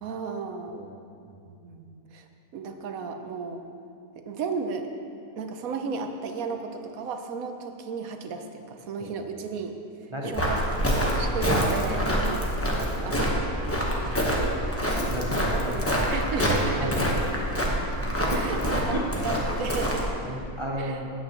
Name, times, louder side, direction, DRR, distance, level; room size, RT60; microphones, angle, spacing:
voice 1, 0.0-0.8 1.5-2.3 2.5-3.6 4.2-4.9 5.4-9.7 10.0-10.6 11.1-13.5 15.7-15.8 16.1-16.9 18.3-19.0 19.2-20.1 20.8-21.0, right 5 dB, 75° right, 6 dB, 1.2 m, -34 dB
voice 2, 0.7-1.0 9.0-9.1 10.1-10.5 12.8-13.2 15.0-15.9 16.8-17.6 18.3-18.6 18.9-19.2 20.2-21.1, right 1 dB, 35° right, -1 dB, 0.5 m, -33 dB
Walk footsteps, 10.3-20.1, equal, 10° left, 0.9 m, -26 dB
15.5 x 8.7 x 3.0 m, 2.5 s
omnidirectional pair, 1.5 m